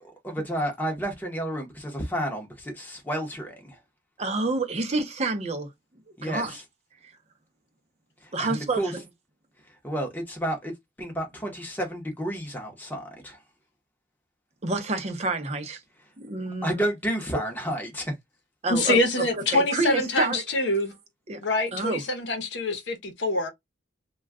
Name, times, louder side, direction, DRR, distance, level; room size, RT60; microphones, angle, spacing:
voice 1, 0.0-3.8 6.2-6.6 8.2-8.9 9.8-13.4 16.6-18.1, right 1 dB, 10° left, 0.7 m, -31 dB
voice 2, 4.2-5.7 6.2-6.6 7.0-7.1 8.3-9.0 14.6-15.8 16.2-16.8 18.6-19.3 19.5-20.4 21.3-21.4 21.7-22.0, right 3 dB, 35° right, 0.6 m, -28 dB
voice 3, 18.7-20.9 21.4-23.5, left 2 dB, 65° left, 0.8 m, -25 dB
2.3 x 2.2 x 3.4 m
head